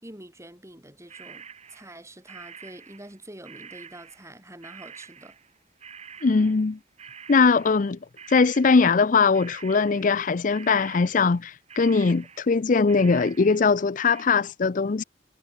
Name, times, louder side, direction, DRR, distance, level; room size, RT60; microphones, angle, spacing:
voice 1, 0.0-5.4, right 1 dB, 15° right, 4.1 m, -46 dB
sound 1, 1.1-10.3 10.5-11.4 11.7-14.2, right 7 dB, 35° right, 2.8 m, -47 dB
voice 2, 6.2-6.8 7.3-8.0 8.3-15.0, left 4 dB, 45° left, 0.5 m, -21 dB
head